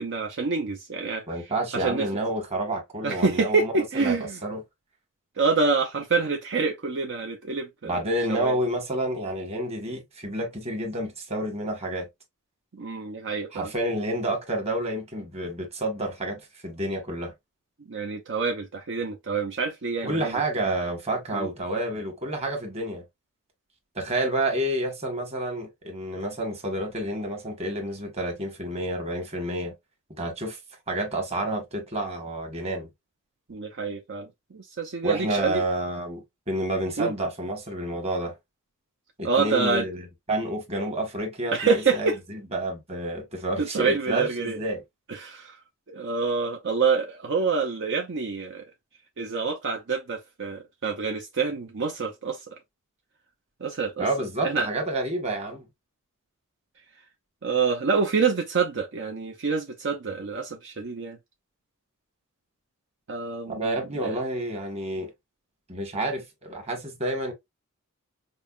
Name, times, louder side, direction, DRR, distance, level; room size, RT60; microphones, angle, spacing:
voice 1, 0.0-1.2 1.7-2.1 3.0-4.4 5.4-8.0 8.3-8.6 12.7-13.7 17.9-20.4 21.3-21.5 33.5-35.6 37.0-37.1 39.2-39.9 41.5-42.2 43.6-44.6 45.1-45.6 45.9-48.6 49.2-52.4 53.6-54.1 54.4-54.7 57.4-61.2 63.1-64.2, right 4 dB, 55° right, 0.7 m, -27 dB
voice 2, 1.3-4.2 4.4-4.6 7.8-12.1 13.5-17.3 20.0-23.0 23.9-29.7 30.2-30.6 30.9-32.9 35.0-38.3 39.2-40.0 40.3-44.8 54.0-55.6 63.5-65.1 65.7-67.3, right 1 dB, 30° right, 1.4 m, -29 dB
5.3 x 2.2 x 2.4 m
head